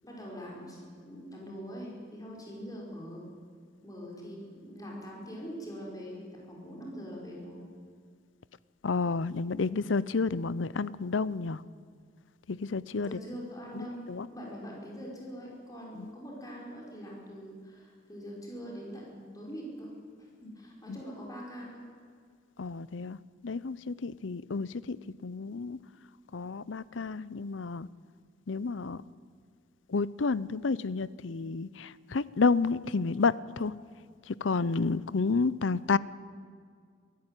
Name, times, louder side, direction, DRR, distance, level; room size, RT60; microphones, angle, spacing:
voice 1, 0.0-3.2 3.8-7.6 12.9-14.0 14.3-19.9 20.2-21.8, equal, 20° left, -3 dB, 5.0 m, -43 dB
voice 2, 8.8-11.6 12.5-13.2 13.7-14.3 16.0-16.1 20.9-21.0 22.6-23.2 23.4-25.0 25.2-25.8 26.3-27.9 28.5-29.0 29.9-33.7 34.3-36.0, left 4 dB, 80° left, 19 dB, 0.6 m, -30 dB
23.5 x 14.5 x 9.1 m, 2.1 s
head